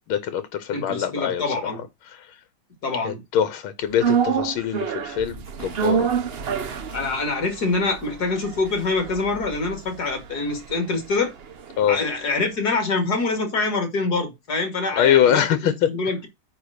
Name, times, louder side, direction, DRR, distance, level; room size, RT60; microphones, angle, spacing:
voice 1, 0.1-1.7 2.2-2.3 3.0-6.1 11.8-12.0 15.0-15.9, left 10 dB, 85° left, 1.7 m, -23 dB
voice 2, 0.7-1.8 2.8-3.2 6.9-11.3 11.9-16.3, left 3 dB, 50° left, 2.6 m, -25 dB
sound 1, 4.0-12.3 12.6-12.7, right 7 dB, 65° right, 0.6 m, -28 dB
9.4 x 3.5 x 6.5 m
omnidirectional pair, 2.2 m